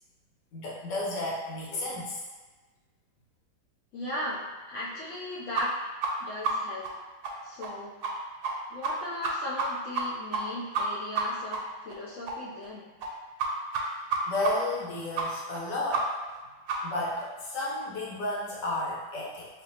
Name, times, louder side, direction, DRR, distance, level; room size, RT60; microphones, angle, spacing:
voice 1, 0.5-2.2 14.3-16.1 16.8-19.5, left 2 dB, 85° left, -6 dB, 1.6 m, -32 dB
voice 2, 3.9-5.8 6.2-6.9 7.4-7.9 8.7-12.9, left 1 dB, 70° left, -8 dB, 0.7 m, -37 dB
sound 1, 5.5-5.6 6.0-6.1 6.4-6.5 6.8-6.9 7.2-7.3 7.6-7.7 8.0-8.1 8.4-8.5 8.8-8.9 9.2-9.7 9.9-10.0 10.3-10.4 10.7-10.8 11.1-11.2 11.5-11.6 11.9-12.0 12.3-12.4 12.6-12.7 13.0-13.1 13.4-13.5 13.7-13.8 14.1-14.2 14.4-14.5 14.8-14.9 15.2-15.3 15.5-15.6 15.9-16.0 16.3-16.4 16.7-16.8 17.1-17.2, right 6 dB, 75° right, 1.0 m, -29 dB
4.3 x 2.6 x 2.7 m, 1.3 s
omnidirectional pair, 1.8 m